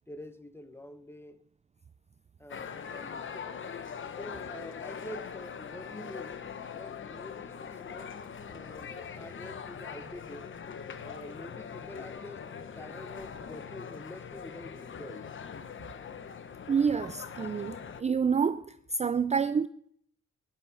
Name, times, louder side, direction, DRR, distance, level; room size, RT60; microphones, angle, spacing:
voice 1, 0.0-1.4 2.4-3.6 4.2-6.5 6.7-8.2 8.5-10.5 11.0-12.4 12.7-15.3, left 1 dB, 10° left, 1.0 m, -46 dB
sound 1, 2.5-18.0, left 7 dB, 40° left, 1.0 m, -42 dB
voice 2, 16.7-18.6 18.9-19.7, right 6 dB, 25° right, 0.4 m, -28 dB
14.5 x 10.5 x 5.6 m
cardioid pair, 90°, 30 cm